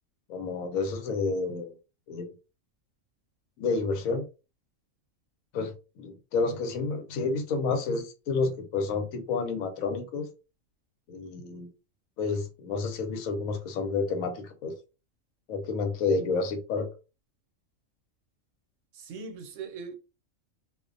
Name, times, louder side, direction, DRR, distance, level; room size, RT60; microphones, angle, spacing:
voice 1, 0.3-1.7 2.1-2.3 3.6-4.3 5.5-10.3 11.1-11.7 12.2-14.7 15.5-16.9, left 4 dB, 85° left, 1.0 m, -30 dB
voice 2, 18.9-20.0, right 5 dB, 75° right, 0.9 m, -40 dB
2.5 x 2.1 x 2.4 m
omnidirectional pair, 1.4 m